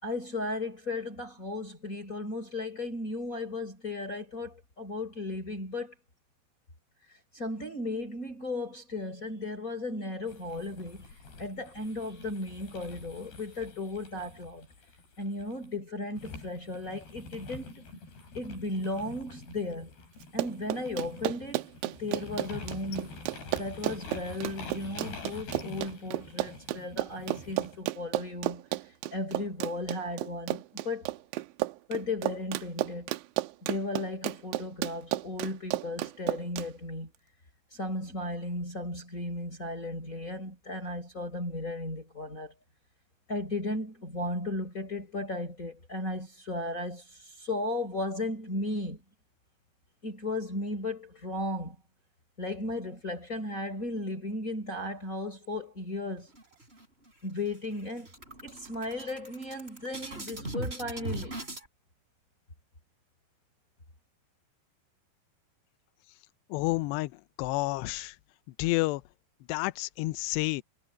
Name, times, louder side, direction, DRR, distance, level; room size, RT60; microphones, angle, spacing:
voice 1, 0.0-5.9 7.3-11.1 11.4-14.7 15.2-17.8 18.3-19.9 20.3-23.2 23.5-28.6 29.1-31.1 31.9-33.1 33.6-37.1 37.7-42.5 43.3-49.0 50.0-51.7 52.4-56.3 57.2-58.1 58.4-61.4, left 2 dB, 15° left, 5.1 m, -35 dB
sound 1, 10.3-15.7 16.2-27.8, left 3 dB, 60° left, 9.3 m, -46 dB
Run, 20.2-36.7, right 19 dB, 85° right, 3.0 m, -33 dB
sound 2, 56.3-57.1 57.5-57.6 57.9-61.7, right 2 dB, 15° right, 4.4 m, -39 dB
voice 2, 66.5-67.1 67.4-68.2 68.6-69.0 69.5-70.6, left 21 dB, 80° left, 2.7 m, -29 dB
omnidirectional pair, 5.3 m